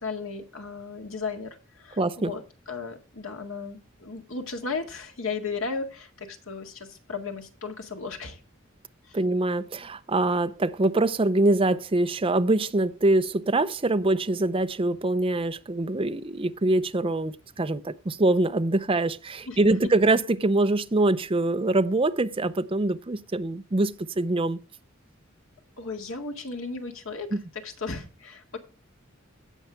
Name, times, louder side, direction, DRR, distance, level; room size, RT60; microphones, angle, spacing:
voice 1, 0.0-8.4 9.0-9.2 19.5-19.6 25.8-27.3 27.6-28.6, left 4 dB, 75° left, 2.0 m, -35 dB
voice 2, 2.0-2.3 9.1-24.6 27.3-27.4, right 2 dB, 25° right, 0.6 m, -24 dB
16.5 x 5.7 x 3.5 m
head